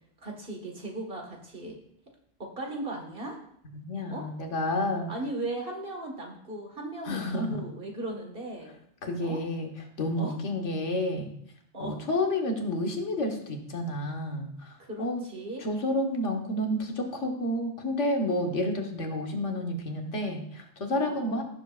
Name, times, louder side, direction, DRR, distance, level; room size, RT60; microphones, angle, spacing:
voice 1, 0.2-1.8 2.4-3.4 4.1-4.3 5.1-8.8 9.2-9.4 10.2-10.4 11.7-12.0 14.8-15.6 21.0-21.4, right 2 dB, 50° right, 1 dB, 1.8 m, -37 dB
voice 2, 3.7-5.1 7.1-7.6 9.0-9.7 10.0-11.3 11.8-15.2 15.6-21.4, left 1 dB, 80° left, 3 dB, 1.6 m, -30 dB
16.0 x 7.1 x 2.4 m, 0.70 s
omnidirectional pair, 1.2 m